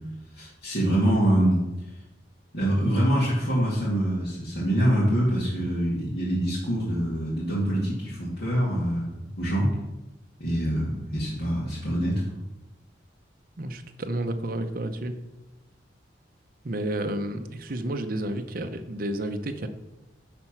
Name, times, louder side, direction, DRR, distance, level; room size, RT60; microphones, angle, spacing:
voice 1, 0.3-1.6 2.5-9.1 9.4-9.7 10.4-12.2, equal, 55° left, -9 dB, 2.5 m, -25 dB
voice 2, 13.6-15.1 16.6-19.7, right 1 dB, 45° right, 7 dB, 0.8 m, -31 dB
10.5 x 4.4 x 6.1 m, 1.0 s
head